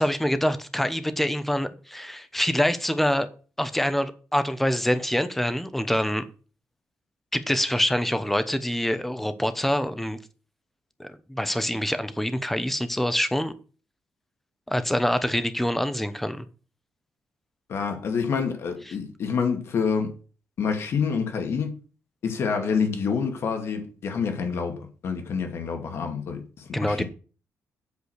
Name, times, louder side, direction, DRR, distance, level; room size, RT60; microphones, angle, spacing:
voice 1, 0.0-3.3 3.6-6.2 7.3-10.2 11.0-13.5 14.7-16.5 18.9-19.0 26.7-27.0, equal, 5° left, 0.8 m, -25 dB
voice 2, 17.7-20.1 20.6-21.7 22.2-27.0, left 6 dB, 60° left, 2.2 m, -27 dB
8.2 x 5.0 x 6.5 m
cardioid pair, 135°, 5 cm